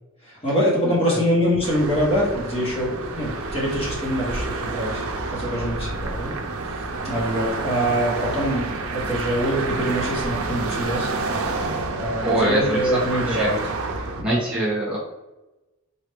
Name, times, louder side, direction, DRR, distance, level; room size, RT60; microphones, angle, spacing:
voice 1, 0.2-5.0 5.3-6.3 6.7-11.1 11.9-13.6 14.2-14.4, equal, 25° left, -6 dB, 1.1 m, -24 dB
voice 2, 0.8-1.2 12.2-13.5 14.2-15.0, right 1 dB, 5° right, -9 dB, 1.1 m, -24 dB
sound 1, 1.6-14.2, right 3 dB, 70° right, 0.5 m, -29 dB
4.2 x 2.4 x 3.4 m, 1.1 s
head